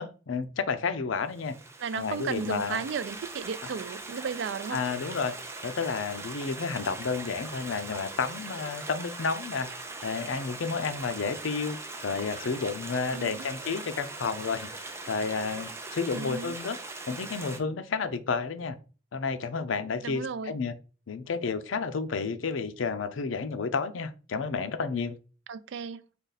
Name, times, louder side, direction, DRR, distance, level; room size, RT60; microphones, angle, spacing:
voice 1, 0.0-1.6 1.9-2.8 4.7-5.4 5.6-9.7 10.0-14.7 15.1-16.8 17.1-18.8 19.1-20.7 21.1-25.2, left 5 dB, 85° left, 0.5 m, -31 dB
Stream, 1.3-17.6, right 3 dB, 15° right, 0.5 m, -41 dB
voice 2, 1.8-4.8 13.1-13.5 16.1-16.5 20.0-20.6 25.5-26.1, right 6 dB, 65° right, 0.3 m, -34 dB
5.1 x 2.4 x 4.0 m
head